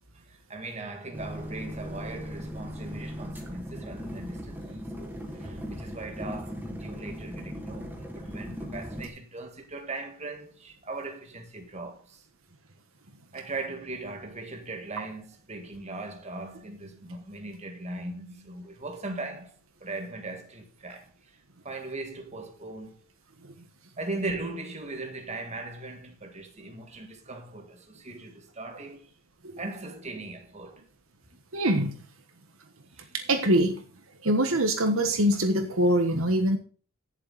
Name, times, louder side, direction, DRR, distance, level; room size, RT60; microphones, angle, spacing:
voice 1, 0.1-12.3 13.3-21.4 21.6-23.1 24.0-29.1 29.6-30.8 32.9-33.2, right 2 dB, 30° right, 2.0 m, -39 dB
sound 1, 1.1-9.1, equal, 10° right, 2.1 m, -38 dB
voice 2, 31.5-32.0 33.1-33.8 34.2-36.6, right 1 dB, 65° right, 1.4 m, -24 dB
16.5 x 7.4 x 4.2 m
head